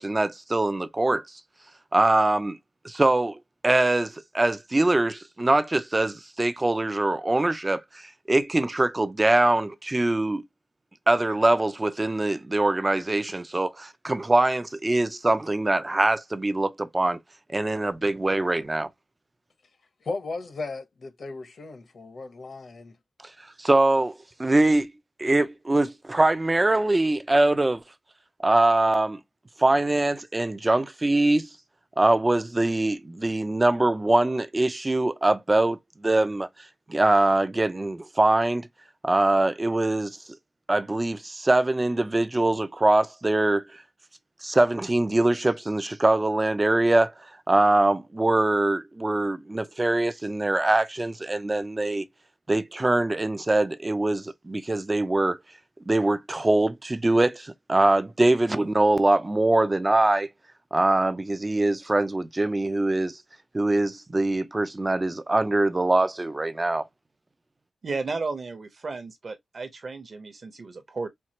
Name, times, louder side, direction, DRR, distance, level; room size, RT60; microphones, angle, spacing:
voice 1, 0.0-1.4 1.9-2.6 2.8-10.4 11.1-17.2 17.5-18.9 23.6-24.1 24.4-24.9 25.2-27.8 28.4-29.2 29.6-31.5 32.0-36.5 36.9-38.7 39.0-40.2 40.7-43.8 44.4-47.1 47.5-52.0 52.5-55.4 55.9-60.3 60.7-63.2 63.5-66.9, right 2 dB, 20° right, 0.5 m, -23 dB
voice 2, 20.0-23.0, left 3 dB, 50° left, 0.9 m, -36 dB
voice 3, 67.8-71.1, right 4 dB, 45° right, 0.9 m, -33 dB
4.4 x 2.4 x 2.9 m
wide cardioid pair, 165°, 0 cm